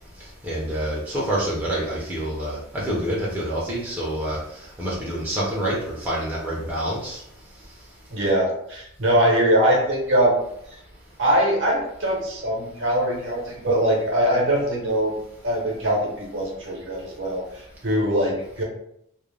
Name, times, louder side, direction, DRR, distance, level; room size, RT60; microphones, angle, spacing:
voice 1, 0.2-7.2, right 1 dB, 10° right, -7 dB, 0.5 m, -27 dB
voice 2, 8.1-10.4 11.2-15.2 15.4-18.6, right 1 dB, 55° right, -2 dB, 0.8 m, -22 dB
2.4 x 2.1 x 3.2 m, 0.75 s
head